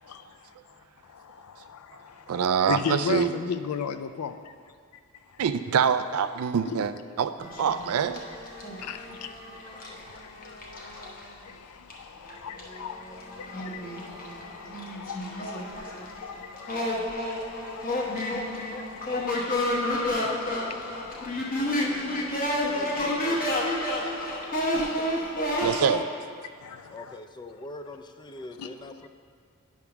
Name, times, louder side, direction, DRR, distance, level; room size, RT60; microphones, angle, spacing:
voice 1, 1.1-2.4 2.7-4.4 6.7-6.8 8.8-9.2 9.7-23.0 23.8-25.7 26.6-27.2 28.6-28.7, left 7 dB, 80° left, 10 dB, 0.4 m, -39 dB
voice 2, 2.3-3.3 5.4-7.3 7.6-8.2 25.6-26.0, right 7 dB, 75° right, 11 dB, 0.4 m, -25 dB
sound 1, 7.4-11.3 11.9-12.0 12.3-26.0, left 1 dB, 40° left, 1.1 m, -31 dB
voice 3, 22.7-23.5 26.9-29.1, left 2 dB, 20° left, 7 dB, 0.4 m, -42 dB
9.6 x 3.6 x 5.8 m, 2.2 s
head